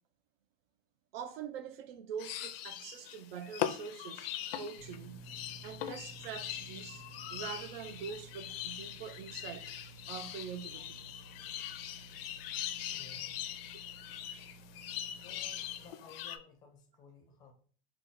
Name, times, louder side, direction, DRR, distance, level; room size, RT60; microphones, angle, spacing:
voice 1, 1.1-5.2 5.6-9.7 10.1-11.1, right 7 dB, 75° right, 0.6 m, -44 dB
sound 1, 2.2-16.4, left 11 dB, 75° left, 0.5 m, -41 dB
sound 2, 4.7-15.9, right 4 dB, 30° right, 1.8 m, -54 dB
voice 2, 12.9-13.5 15.1-17.5, left 4 dB, 15° left, 0.4 m, -57 dB
3.7 x 2.3 x 3.5 m
supercardioid pair, 160°, 29 cm